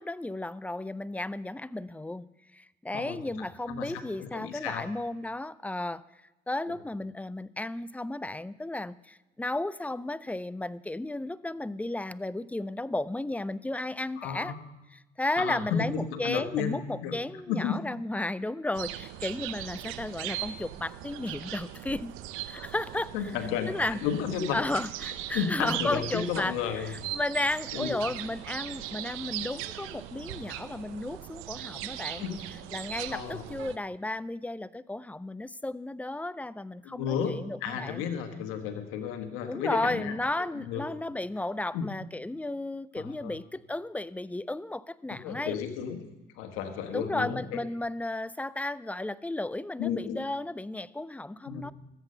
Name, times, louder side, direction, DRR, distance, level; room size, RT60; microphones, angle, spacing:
voice 1, 0.0-2.3 2.5-6.0 6.5-14.5 14.9-22.1 22.5-23.3 23.7-24.0 24.5-32.2 32.7-38.0 39.5-45.6 46.9-51.7, left 2 dB, 5° left, 18 dB, 0.4 m, -34 dB
voice 2, 3.7-4.9 14.2-14.5 15.4-17.2 17.5-17.8 23.1-24.6 25.3-26.9 27.7-27.9 32.2-32.5 33.1-33.5 36.8-40.1 40.5-40.8 41.7-41.9 42.9-43.4 45.2-46.0 46.4-47.6 49.8-50.2 51.4-51.7, left 8 dB, 90° left, 8 dB, 1.4 m, -33 dB
sound 1, 18.7-33.8, right 13 dB, 85° right, 0.7 m, -39 dB
14.0 x 8.1 x 6.6 m, 1.0 s
supercardioid pair, 75°, 21 cm